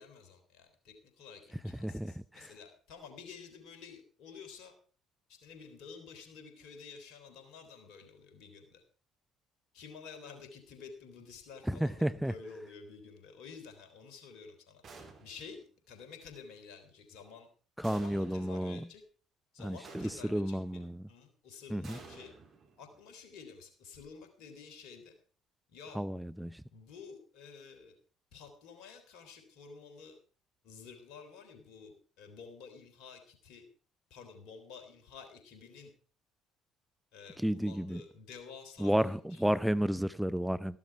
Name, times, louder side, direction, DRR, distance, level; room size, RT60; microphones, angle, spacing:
voice 1, 0.0-4.7 5.3-8.8 9.7-14.8 15.2-17.5 17.8-19.0 19.5-20.8 21.1-22.3 22.8-25.1 25.7-26.0 26.7-28.0 28.3-30.2 30.6-33.6 34.1-35.9 37.1-39.4, left 5 dB, 60° left, 6 dB, 3.4 m, -51 dB
voice 2, 1.8-2.5 11.7-12.3 17.8-18.9 19.6-21.0 21.7-22.0 25.9-26.6 37.4-38.0 38.8-40.8, equal, 5° right, 15 dB, 0.5 m, -32 dB
sound 1, 14.8-15.6 17.8-18.6 19.8-20.6 21.8-23.1, right 4 dB, 50° right, 3.2 m, -52 dB
14.0 x 12.0 x 4.7 m, 0.40 s
figure-of-eight pair, 50°, 0 cm